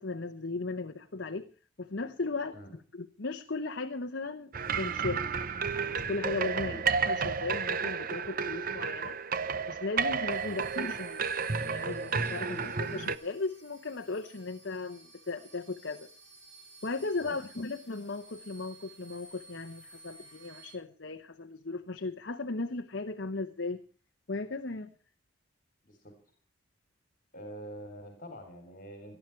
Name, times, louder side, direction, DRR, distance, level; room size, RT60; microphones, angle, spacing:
voice 1, 0.0-1.5 1.8-4.5 4.8-5.3 5.8-9.2 9.7-11.3 11.6-16.1 16.8-23.8 24.3-24.9, left 3 dB, 55° left, 6 dB, 0.9 m, -36 dB
sound 1, 4.5-13.2, right 5 dB, 40° right, 0.7 m, -32 dB
sound 2, 10.3-20.7, right 2 dB, 60° right, 5.9 m, -54 dB
voice 2, 17.2-17.6 24.7-24.8 25.8-26.1 27.3-29.2, equal, 40° left, 5 dB, 3.2 m, -46 dB
19.5 x 13.0 x 4.5 m, 0.39 s
head